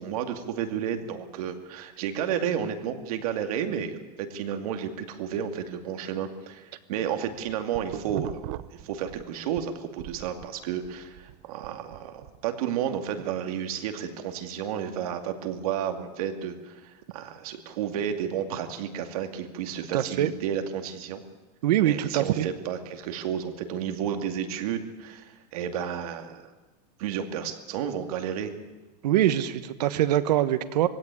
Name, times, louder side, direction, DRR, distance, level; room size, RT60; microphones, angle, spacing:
voice 1, 0.0-8.4 8.7-21.2 21.8-26.5 27.0-28.5, right 8 dB, 65° right, 6 dB, 2.4 m, -32 dB
sound 1, 7.3-9.7 10.0-12.4, right 15 dB, 45° right, 0.8 m, -40 dB
voice 2, 19.9-20.3 21.6-22.5 29.0-30.9, right 12 dB, 80° right, 12 dB, 1.3 m, -23 dB
20.0 x 16.5 x 9.7 m, 1.2 s
supercardioid pair, 165°, 20 cm